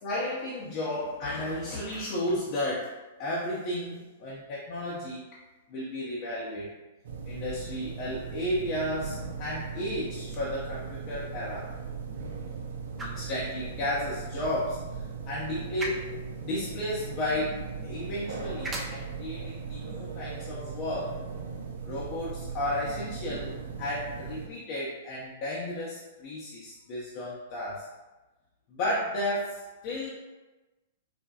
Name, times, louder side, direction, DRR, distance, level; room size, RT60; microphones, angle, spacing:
voice 1, 0.0-5.2 5.7-6.7 7.3-11.7 13.0-16.1 16.4-21.1 21.8-23.5 23.8-27.9 28.7-30.1, left 1 dB, 45° left, -7 dB, 0.7 m, -33 dB
sound 1, 7.0-24.5, right 5 dB, 65° right, 0.5 m, -38 dB
sound 2, 10.2-22.2, right 1 dB, 15° right, 0.5 m, -46 dB
4.2 x 2.1 x 2.3 m, 1.1 s
figure-of-eight pair, 110°, 0 cm